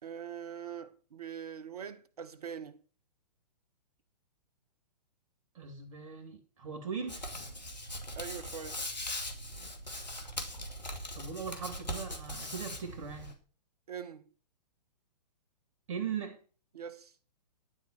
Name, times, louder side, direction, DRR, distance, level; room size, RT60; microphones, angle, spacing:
voice 1, 0.0-2.8 8.2-8.9 13.9-14.3 16.7-17.1, right 8 dB, 65° right, 1.1 m, -43 dB
voice 2, 5.5-7.3 11.1-13.3 15.9-16.4, right 6 dB, 45° right, 2.4 m, -39 dB
Hands, 7.1-13.3, left 1 dB, 85° left, 2.3 m, -40 dB
11.5 x 4.3 x 7.2 m
figure-of-eight pair, 120°, 21 cm